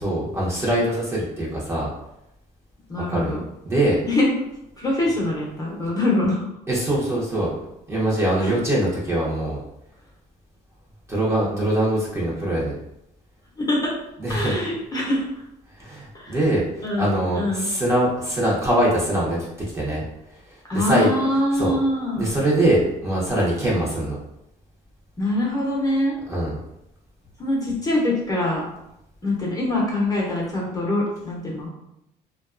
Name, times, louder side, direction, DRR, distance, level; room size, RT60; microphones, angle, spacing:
voice 1, 0.0-1.9 3.1-3.4 3.6-4.0 5.7-5.8 6.7-7.5 7.9-9.6 11.1-12.8 14.2-14.5 15.8-19.4 19.7-20.0 20.5-21.1 21.5-21.7 22.2-24.2 26.3-26.6, right 1 dB, 15° right, -6 dB, 0.8 m, -23 dB
voice 2, 2.9-3.4 4.1-4.3 4.8-6.5 8.4-8.5 13.6-13.9 14.3-15.3 16.1-16.4 16.8-17.7 20.7-22.3 25.2-26.2 27.4-28.6 29.2-31.7, left 1 dB, 20° left, -4 dB, 0.8 m, -24 dB
2.5 x 2.3 x 2.4 m, 0.82 s
cardioid pair, 110°, 17 cm